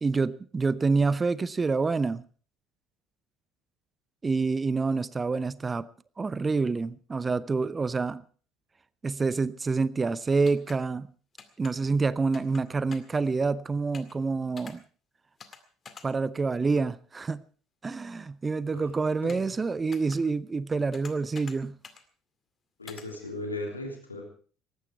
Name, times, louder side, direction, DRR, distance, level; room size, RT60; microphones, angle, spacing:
voice 1, 0.0-2.2 4.2-5.9 6.2-8.2 9.0-11.1 11.6-14.8 16.0-17.4 17.8-21.7, right 4 dB, 25° right, 0.7 m, -27 dB
sound 1, 10.5-10.8 11.4-11.7 12.3-12.6 12.9-13.2 13.9-14.1 14.6-14.7 15.4-15.6 15.9-16.1 19.3-19.5 19.9-20.2 20.9-21.6 21.8-22.0 22.9-23.1, left 6 dB, 35° left, 2.1 m, -46 dB
voice 2, 19.2-19.5 22.8-24.3, left 2 dB, 85° left, 3.3 m, -37 dB
18.5 x 15.0 x 4.5 m
figure-of-eight pair, 60°, 0 cm